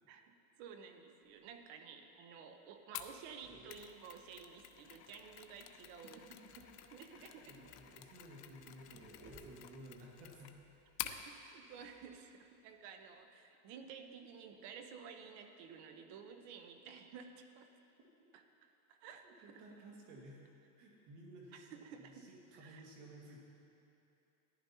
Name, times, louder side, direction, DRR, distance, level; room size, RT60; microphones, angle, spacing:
voice 1, 0.6-6.2 6.9-7.5 11.0-17.7 18.3-18.4 18.9-19.6 21.5-22.1 22.6-22.8, right 6 dB, 65° right, 6 dB, 1.0 m, -53 dB
sound 1, 1.2-1.7 2.0-2.1 2.4-2.6 2.9-5.3 6.4-13.3, right 2 dB, 35° right, 1.6 m, -64 dB
Mechanisms, 2.9-11.2, left 13 dB, 70° left, 0.7 m, -50 dB
voice 2, 5.8-10.6 19.2-20.4 20.8-23.4, right 1 dB, 80° right, -3 dB, 2.1 m, -56 dB
14.0 x 11.0 x 2.8 m, 2.9 s
supercardioid pair, 115°, 45 cm